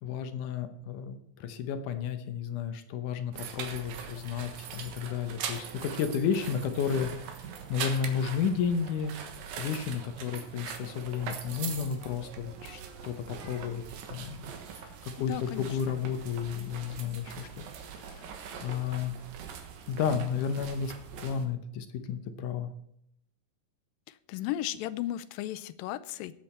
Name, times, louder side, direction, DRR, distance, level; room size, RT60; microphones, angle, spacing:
voice 1, 0.0-7.1 7.7-9.1 9.6-13.8 14.1-17.5 18.0-18.3 18.6-19.1 19.9-22.7, left 7 dB, 70° left, 8 dB, 2.3 m, -32 dB
sound 1, 3.3-21.5, right 7 dB, 85° right, 3.1 m, -42 dB
voice 2, 15.3-16.0 24.1-26.3, left 13 dB, 85° left, 15 dB, 2.4 m, -35 dB
18.0 x 7.8 x 4.4 m, 0.75 s
omnidirectional pair, 4.0 m